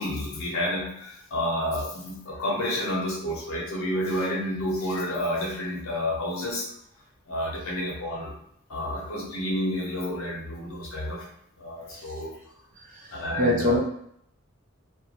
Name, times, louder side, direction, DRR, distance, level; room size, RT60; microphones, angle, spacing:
voice 1, 0.0-6.7 7.3-8.3 8.7-11.3 11.6-12.4 13.1-13.8, left 1 dB, 70° left, -3 dB, 0.7 m, -30 dB
voice 2, 12.8-13.8, left 1 dB, 40° right, -2 dB, 0.6 m, -25 dB
2.4 x 2.2 x 2.9 m, 0.72 s
head